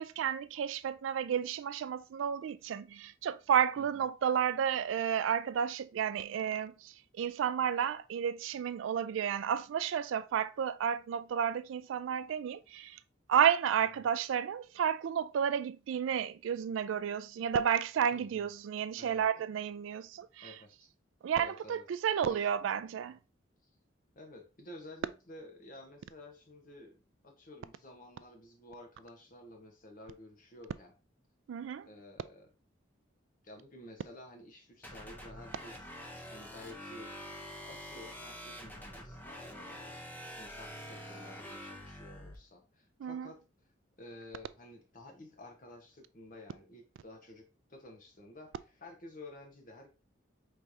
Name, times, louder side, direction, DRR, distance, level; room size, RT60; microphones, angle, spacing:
voice 1, 0.0-13.0 13.3-20.5 21.2-23.2 31.5-31.9 43.0-43.3, right 8 dB, 85° right, 0.3 m, -32 dB
voice 2, 3.8-4.1 13.8-14.1 18.1-18.5 19.0-19.3 20.4-20.9 21.4-21.8 22.3-22.5 24.1-27.0 27.2-30.9 31.9-32.5 33.4-35.9 36.3-37.1 37.6-43.4 44.0-49.9, left 1 dB, 45° left, 1.0 m, -52 dB
sound 1, 34.8-42.4, equal, 10° left, 0.6 m, -46 dB
4.8 x 3.2 x 2.7 m
head